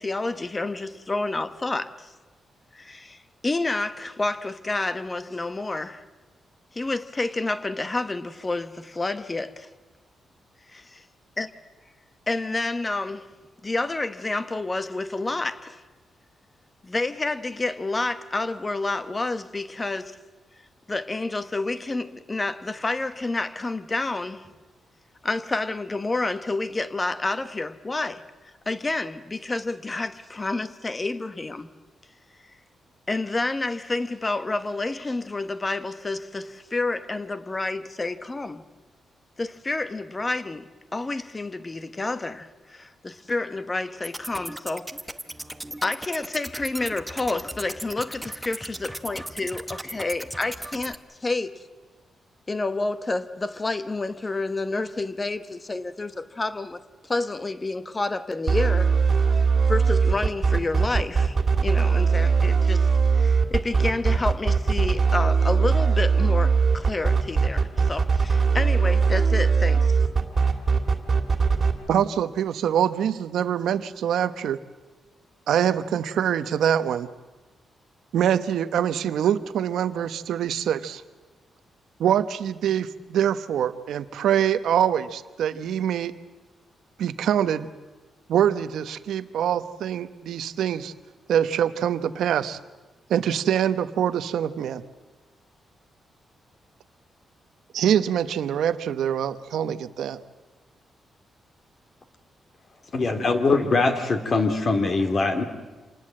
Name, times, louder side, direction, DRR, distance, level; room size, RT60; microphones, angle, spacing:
voice 1, 0.0-2.1 2.7-6.0 6.7-9.7 10.8-11.0 11.4-11.5 12.3-13.3 13.6-15.8 16.8-20.2 20.9-24.5 25.2-28.2 28.7-31.7 33.1-38.6 39.4-44.9 45.8-51.6 52.5-59.0 59.7-70.0, left 2 dB, 20° left, 1.0 m, -29 dB
sound 1, 44.0-51.0, right 1 dB, 5° right, 0.9 m, -37 dB
sound 2, 58.5-71.7, right 5 dB, 35° right, 2.3 m, -20 dB
voice 2, 71.9-74.6 75.5-77.1 78.1-81.0 82.0-86.1 87.0-87.7 88.3-90.9 91.3-92.6 93.1-94.8 97.7-100.2, right 9 dB, 90° right, 1.0 m, -24 dB
voice 3, 102.9-105.4, left 3 dB, 40° left, 2.5 m, -22 dB
26.5 x 19.5 x 7.6 m
wide cardioid pair, 145°, 0 cm